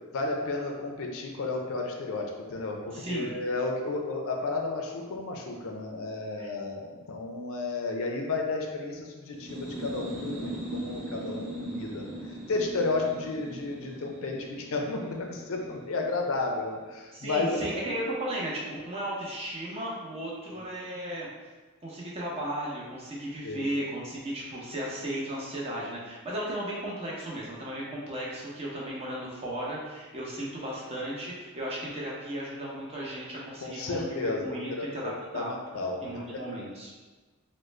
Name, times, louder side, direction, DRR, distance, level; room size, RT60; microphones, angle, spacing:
voice 1, 0.1-12.1 12.5-17.6 23.4-23.7 33.6-36.4, left 3 dB, 65° left, 2 dB, 0.4 m, -32 dB
voice 2, 2.9-3.4 6.4-6.5 17.1-21.3 21.8-35.5 36.0-36.9, right 1 dB, 25° right, -5 dB, 0.7 m, -35 dB
sound 1, 9.3-16.8, right 1 dB, 55° right, 0.8 m, -40 dB
3.6 x 2.1 x 3.1 m, 1.3 s
head